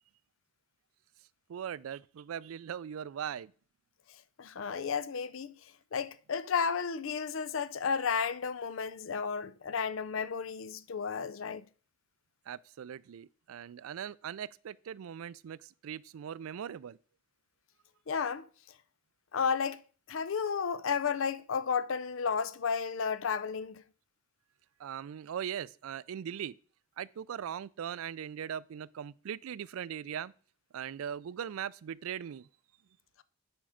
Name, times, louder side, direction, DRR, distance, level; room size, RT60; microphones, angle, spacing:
voice 1, 1.5-3.5 12.5-17.0 24.8-26.5 27.0-30.3 30.7-32.5, right 8 dB, 90° right, 0.4 m, -40 dB
voice 2, 4.4-5.5 5.9-11.6 18.1-18.5 19.3-19.8 20.1-23.8, left 6 dB, 70° left, 0.5 m, -32 dB
8.9 x 5.2 x 5.0 m
head